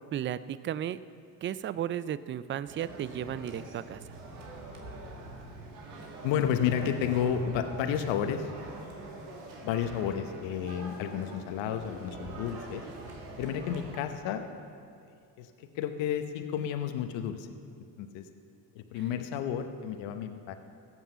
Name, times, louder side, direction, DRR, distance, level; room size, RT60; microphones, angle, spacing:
voice 1, 0.1-1.0 1.4-4.1, right 10 dB, 25° right, 16 dB, 0.4 m, -34 dB
sound 1, 2.6-14.0, right 2 dB, 90° right, 1.9 m, -44 dB
voice 2, 6.2-8.5 9.6-12.8 13.4-14.5 15.4-17.5 18.0-18.3 18.7-20.5, left 8 dB, 70° left, 7 dB, 1.0 m, -31 dB
15.5 x 7.5 x 6.8 m, 2.4 s
supercardioid pair, 75°, 47 cm